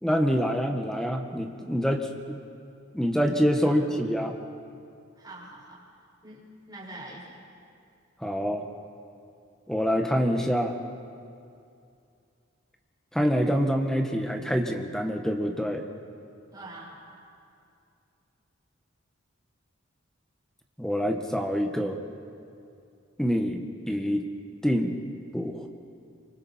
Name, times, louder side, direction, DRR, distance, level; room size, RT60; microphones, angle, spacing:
voice 1, 0.0-2.4 2.9-4.3 8.2-8.6 9.7-10.8 13.1-15.8 20.8-22.0 23.2-24.3 24.6-25.0 25.3-25.7, equal, 5° left, 3 dB, 1.3 m, -26 dB
voice 2, 5.2-5.8 6.2-7.3 16.5-17.0, right 2 dB, 20° right, -6 dB, 5.9 m, -44 dB
27.5 x 25.0 x 4.3 m, 2.5 s
head